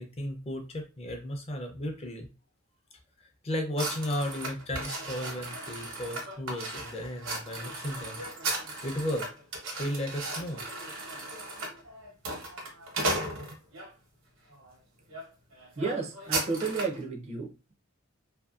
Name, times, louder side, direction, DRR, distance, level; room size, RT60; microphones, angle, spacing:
voice 1, 0.0-2.3 3.4-8.3 8.8-9.3 9.7-10.7, equal, 30° left, 0.5 m, -34 dB
sound 1, 3.8-13.9 14.5-14.7 15.1-15.3 15.5-17.0, right 2 dB, 80° right, 1.0 m, -36 dB
voice 2, 15.8-17.7, right 4 dB, 30° right, 0.5 m, -32 dB
2.6 x 2.6 x 2.4 m
head